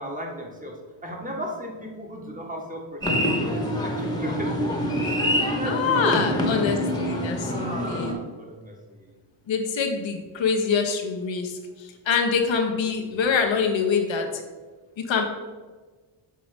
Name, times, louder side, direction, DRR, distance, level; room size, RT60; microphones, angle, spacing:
voice 1, 0.0-4.7 5.3-6.4 7.4-9.1, equal, 15° right, 1 dB, 1.7 m, -35 dB
sound 1, 3.0-8.1, equal, 10° left, 1.5 m, -26 dB
voice 2, 5.6-8.2 9.5-11.5 11.8-14.3 15.0-15.2, left 5 dB, 65° left, 3 dB, 1.2 m, -25 dB
6.7 x 3.8 x 5.1 m, 1.4 s
cardioid pair, 65°, 49 cm